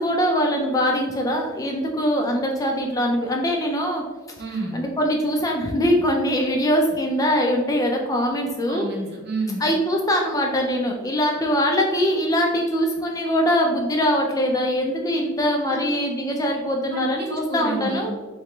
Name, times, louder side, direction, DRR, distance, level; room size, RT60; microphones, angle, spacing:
voice 1, 0.0-4.0 4.7-8.8 9.6-18.1, equal, 15° left, 1 dB, 0.3 m, -22 dB
voice 2, 4.4-4.8 8.7-9.7 15.7-15.9 16.9-18.1, right 2 dB, 50° right, 0 dB, 0.7 m, -30 dB
3.2 x 2.9 x 3.0 m, 1.3 s
head